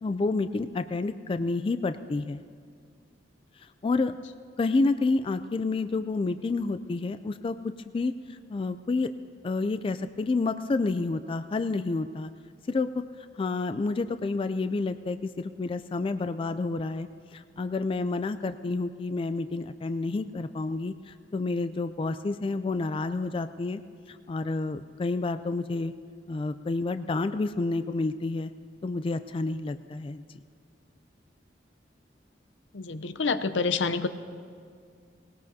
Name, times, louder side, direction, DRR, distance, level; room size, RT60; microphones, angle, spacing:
voice 1, 0.0-2.4 3.8-4.1 4.6-8.1 8.5-9.1 9.4-12.3 12.7-13.0 13.4-23.8 24.1-25.9 26.3-28.5 28.8-30.2, left 3 dB, 30° left, 11 dB, 0.3 m, -29 dB
voice 2, 32.7-34.1, left 4 dB, 80° left, 11 dB, 0.6 m, -27 dB
19.5 x 18.5 x 2.7 m, 2.2 s
head